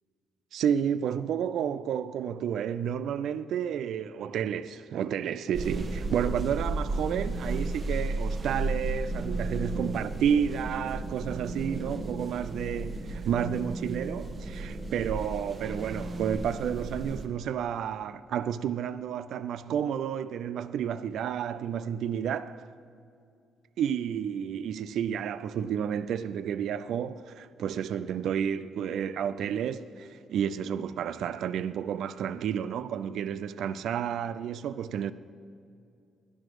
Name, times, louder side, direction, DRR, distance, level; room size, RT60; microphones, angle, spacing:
voice 1, 0.5-22.7 23.8-35.1, right 8 dB, 75° right, 0.4 m, -31 dB
sound 1, 5.5-17.3, right 2 dB, 40° right, 1.3 m, -34 dB
11.0 x 11.0 x 4.7 m
cardioid pair, 90°, 0 cm